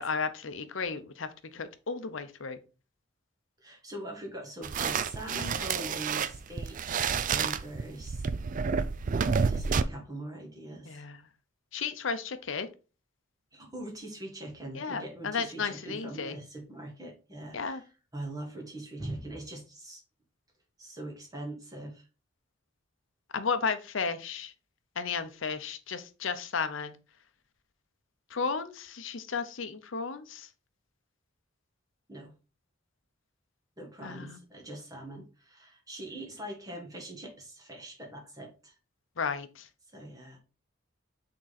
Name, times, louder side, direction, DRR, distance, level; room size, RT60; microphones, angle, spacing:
voice 1, 0.0-2.6 10.9-11.2 11.7-12.7 14.7-16.4 17.5-17.8 23.3-24.5 25.0-27.0 28.3-30.5 34.0-34.4 39.2-39.7, left 5 dB, 70° left, 11 dB, 0.7 m, -34 dB
voice 2, 3.6-8.3 9.4-11.1 13.5-20.0 20.8-22.1 32.1-32.3 33.8-38.8 39.9-40.4, right 1 dB, 20° right, 1 dB, 1.8 m, -42 dB
sound 1, 4.6-9.8, right 5 dB, 40° right, 0.4 m, -29 dB
6.3 x 3.8 x 4.2 m, 0.34 s
head